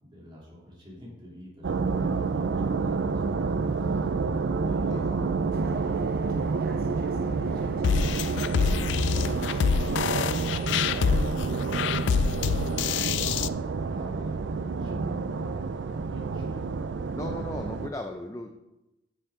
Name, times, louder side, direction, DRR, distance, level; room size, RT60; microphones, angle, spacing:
voice 1, 0.0-4.2 4.7-5.1 6.7-14.4 14.7-16.7, left 1 dB, 25° right, -6 dB, 3.0 m, -46 dB
sound 1, 1.6-17.9, right 4 dB, 70° right, 0.4 m, -29 dB
voice 2, 4.8-5.5 6.2-6.5 17.1-18.5, left 1 dB, 15° left, 4 dB, 0.5 m, -38 dB
sound 2, 5.5-11.2, right 1 dB, 50° right, 0.8 m, -43 dB
sound 3, 7.8-13.5, left 6 dB, 70° left, 0.3 m, -26 dB
9.4 x 7.1 x 3.7 m, 0.95 s
head